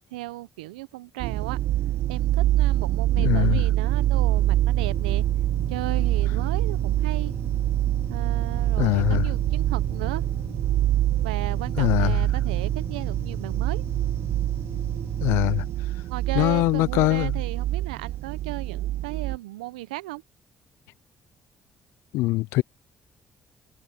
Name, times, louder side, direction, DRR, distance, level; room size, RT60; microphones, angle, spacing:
voice 1, 0.0-1.6 2.1-5.3 5.7-7.4 8.1-10.2 11.2-13.8 16.1-20.2, right 19 dB, 85° right, 0.8 m, -35 dB
sound 1, 1.2-19.4, right 14 dB, 65° right, 0.6 m, -25 dB
voice 2, 3.2-3.6 8.8-9.3 11.8-12.2 15.2-15.7 16.4-17.3 22.1-22.6, left 20 dB, 75° left, 0.4 m, -22 dB
sound 2, 3.9-15.3, right 1 dB, 10° right, 2.7 m, -37 dB
hypercardioid pair, 50°, 4 cm